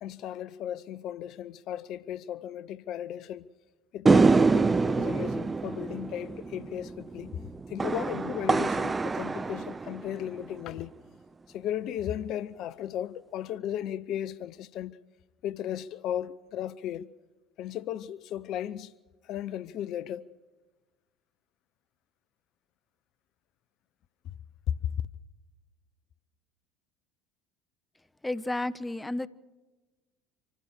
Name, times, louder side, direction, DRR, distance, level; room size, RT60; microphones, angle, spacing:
voice 1, 0.0-3.5 3.9-7.3 7.7-10.9 11.5-15.0 15.4-17.1 17.6-18.9 19.3-20.3 24.9-25.0, left 10 dB, 55° left, 0.6 m, -35 dB
sound 1, 4.1-10.6, right 4 dB, 20° right, 0.5 m, -26 dB
voice 2, 28.2-29.3, left 2 dB, 10° left, 0.8 m, -31 dB
26.0 x 15.5 x 6.7 m
hypercardioid pair, 65°, 0 cm